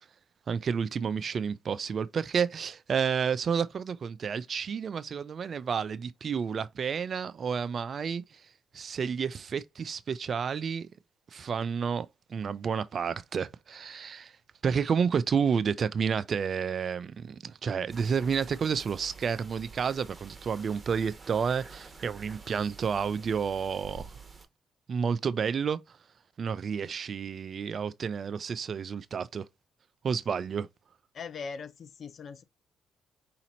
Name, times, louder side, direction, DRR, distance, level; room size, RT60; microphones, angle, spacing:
voice 1, 0.5-8.4 8.7-10.9 11.3-14.3 14.6-24.1 24.9-26.0 26.4-29.5 30.0-30.7, right 6 dB, 50° right, 0.5 m, -30 dB
sound 1, 17.9-24.5, right 4 dB, 25° right, 1.2 m, -48 dB
voice 2, 31.1-32.4, left 5 dB, 55° left, 0.7 m, -40 dB
5.0 x 2.9 x 2.9 m
supercardioid pair, 70°, 0 cm